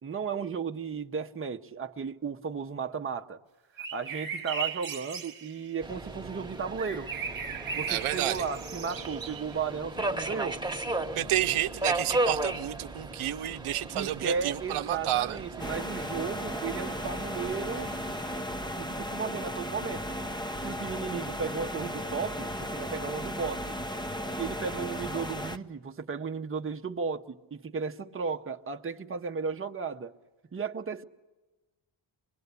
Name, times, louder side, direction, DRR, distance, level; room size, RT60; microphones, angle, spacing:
voice 1, 0.0-3.4 3.7-7.1 7.7-10.6 13.9-17.9 18.8-20.2 20.6-23.8 24.4-30.1 30.5-31.0, right 5 dB, 25° right, 0.8 m, -35 dB
sound 1, 3.8-5.7 6.8-9.6 10.4-10.5, right 6 dB, 45° right, 1.3 m, -37 dB
Subway metro underground, 5.8-18.4, right 2 dB, 10° right, 1.2 m, -36 dB
voice 2, 7.9-8.4 11.1-15.4, right 12 dB, 85° right, 0.8 m, -30 dB
sound 2, 15.6-25.6, equal, 10° left, 0.7 m, -35 dB
25.0 x 22.0 x 8.2 m
wide cardioid pair, 135°, 49 cm